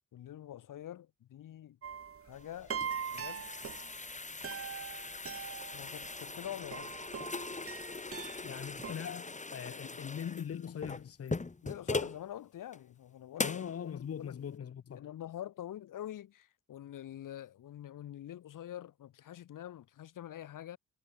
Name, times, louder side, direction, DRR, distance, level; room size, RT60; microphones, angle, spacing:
voice 1, 0.1-1.8 2.2-2.7 3.1-3.5 5.7-7.0 11.6-13.6 14.1-14.3 14.9-20.8, left 11 dB, 90° left, 2.8 m, -45 dB
sound 1, 1.8-8.9, right 7 dB, 45° right, 1.6 m, -42 dB
sound 2, 2.4-12.2 12.7-12.8 13.4-13.7, left 3 dB, 25° left, 2.8 m, -40 dB
voice 2, 8.4-11.5 13.4-15.1, left 8 dB, 50° left, 1.1 m, -41 dB
cardioid pair, 100°, 31 cm